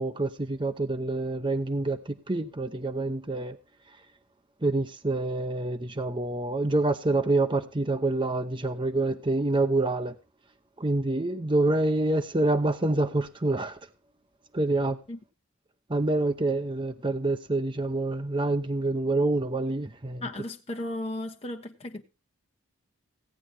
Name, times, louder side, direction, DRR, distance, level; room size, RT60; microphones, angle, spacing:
voice 1, 0.0-3.6 4.6-10.1 10.8-13.8 14.5-15.0 15.9-20.2, right 2 dB, 25° right, 0.8 m, -27 dB
voice 2, 20.2-22.0, left 1 dB, 30° left, 1.2 m, -35 dB
16.5 x 9.0 x 4.4 m
head